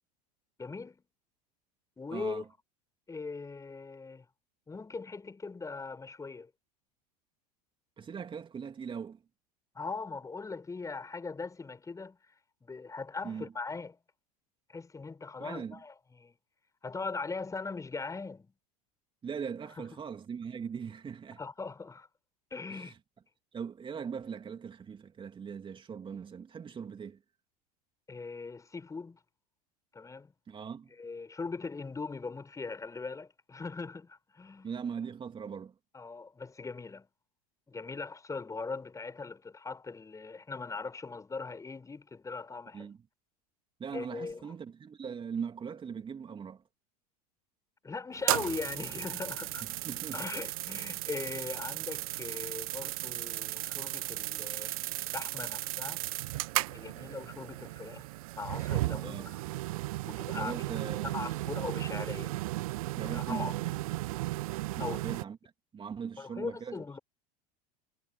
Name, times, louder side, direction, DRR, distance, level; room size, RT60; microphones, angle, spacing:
voice 1, 0.6-1.0 2.0-2.4 3.1-4.3 4.7-6.5 9.7-12.2 12.6-14.0 14.7-16.4 16.8-18.5 21.4-22.1 22.5-22.9 28.1-29.2 29.9-30.3 31.0-34.7 35.9-37.1 37.7-42.9 43.9-44.4 47.8-49.6 50.1-56.0 56.6-58.1 58.3-59.4 60.1-62.4 63.0-63.5 64.8-65.0 66.2-67.0, left 4 dB, 15° left, 5.6 m, -40 dB
voice 2, 2.1-2.5 8.0-9.2 13.2-13.5 15.4-15.8 19.2-21.4 22.7-23.0 23.5-27.2 30.5-30.9 34.6-35.7 42.7-43.0 43.8-46.6 49.6-50.2 59.0-59.3 60.3-61.1 63.0-63.7 64.8-65.4 65.7-66.8, right 6 dB, 25° right, 2.9 m, -40 dB
sound 1, 48.2-65.2, right 19 dB, 60° right, 0.5 m, -35 dB
figure-of-eight pair, 80°, 21 cm